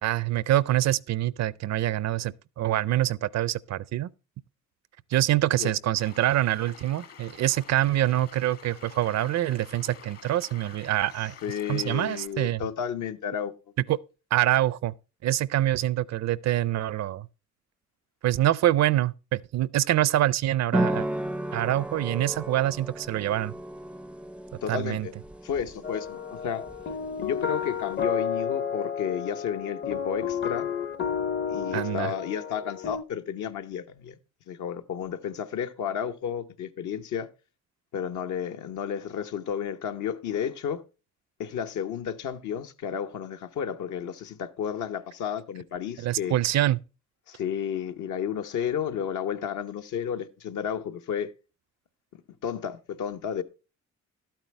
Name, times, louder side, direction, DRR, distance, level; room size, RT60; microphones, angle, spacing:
voice 1, 0.0-4.1 5.1-11.4 11.7-12.6 13.9-14.0 14.3-14.9 15.2-17.3 18.2-21.1 21.5-23.5 24.7-25.1 31.7-32.1 46.0-46.8, right 14 dB, 60° right, 0.5 m, -25 dB
sound 1, 6.0-12.3, left 7 dB, 50° left, 1.3 m, -49 dB
voice 2, 11.4-13.5 24.6-25.1 25.4-26.6 27.2-30.7 31.5-34.2 34.5-37.3 37.9-40.8 41.4-46.3 47.3-51.3 52.4-53.4, left 8 dB, 75° left, 1.0 m, -32 dB
sound 2, 20.7-28.0, right 1 dB, 5° right, 0.4 m, -34 dB
sound 3, 25.8-33.0, left 7 dB, 35° left, 0.6 m, -31 dB
12.0 x 8.9 x 3.2 m
cardioid pair, 90°, 30 cm